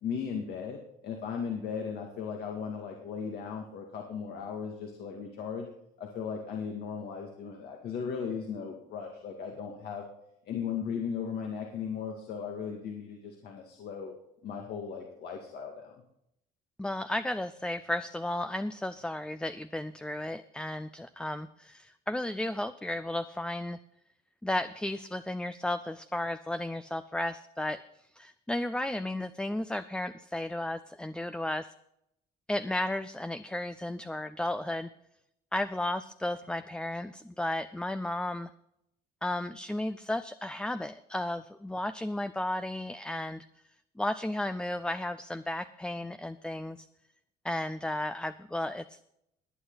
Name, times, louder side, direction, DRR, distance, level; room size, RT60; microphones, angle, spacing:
voice 1, 0.0-5.7 6.0-10.1 10.5-14.1 14.4-16.0, left 6 dB, 70° left, 1 dB, 2.2 m, -37 dB
voice 2, 16.8-23.8 24.4-27.8 28.1-31.7 32.5-34.9 35.5-38.5 39.2-43.5 44.0-46.9 47.4-49.0, left 1 dB, 5° left, 12 dB, 0.4 m, -34 dB
19.0 x 9.2 x 4.0 m, 0.78 s
cardioid pair, 110°, 17 cm